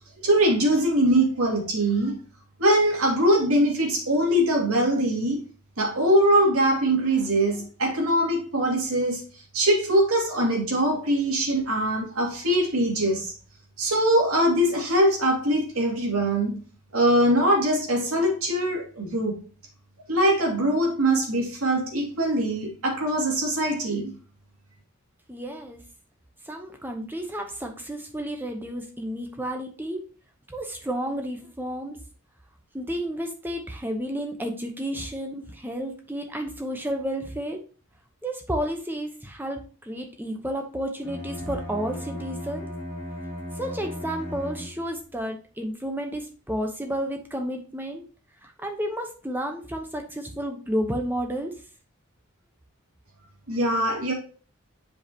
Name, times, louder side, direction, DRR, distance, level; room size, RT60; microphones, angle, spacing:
voice 1, 0.2-2.2 2.6-5.4 5.8-9.2 9.5-13.3 13.8-16.6 16.9-19.4 20.1-24.1 53.5-54.1, right 1 dB, 80° right, 2.5 m, -22 dB
voice 2, 25.3-25.8 26.4-30.0 30.5-32.0 32.7-37.6 38.2-42.7 43.6-48.0 48.4-51.5, equal, 10° right, 0.9 m, -31 dB
Bowed string instrument, 41.0-45.1, left 1 dB, 10° left, 2.3 m, -36 dB
7.2 x 5.2 x 2.9 m
head